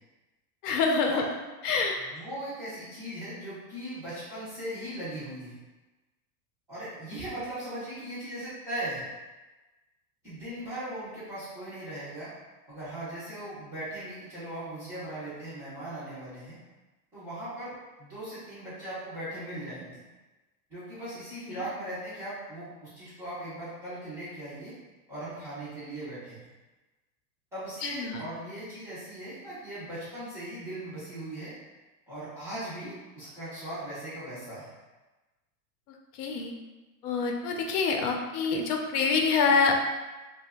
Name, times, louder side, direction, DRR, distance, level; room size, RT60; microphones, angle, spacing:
voice 1, 0.6-1.2 1.6-2.0 21.5-21.6 27.8-28.2 36.1-36.5 37.0-39.8, left 4 dB, 80° left, 2 dB, 0.6 m, -26 dB
voice 2, 2.0-5.6 6.7-9.1 10.2-12.3 12.7-16.6 17.1-20.0 20.7-24.7 25.1-26.5 27.5-31.5 32.1-34.7, right 1 dB, 5° right, -14 dB, 0.3 m, -39 dB
2.8 x 2.1 x 3.4 m, 1.2 s
supercardioid pair, 165°, 46 cm